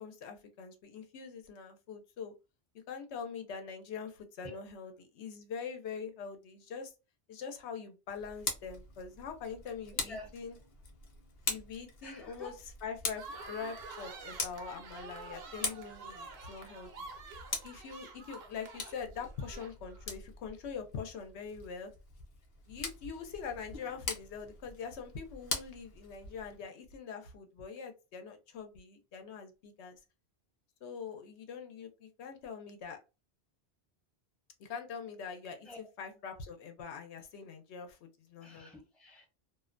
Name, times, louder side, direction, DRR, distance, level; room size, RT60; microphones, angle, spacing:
voice 1, 0.0-2.3 2.9-6.9 7.3-10.6 11.5-17.1 17.6-21.9 22.7-30.0 30.8-33.0 34.6-38.7, left 6 dB, 85° left, 0.9 m, -43 dB
Tick, 8.1-26.6, left 4 dB, 50° left, 0.6 m, -43 dB
voice 2, 9.9-10.3 12.0-12.5 35.7-35.8 38.4-39.3, left 2 dB, ahead, 0.5 m, -48 dB
sound 1, 13.1-20.1, right 3 dB, 75° right, 0.9 m, -48 dB
2.4 x 2.1 x 2.4 m
omnidirectional pair, 1.1 m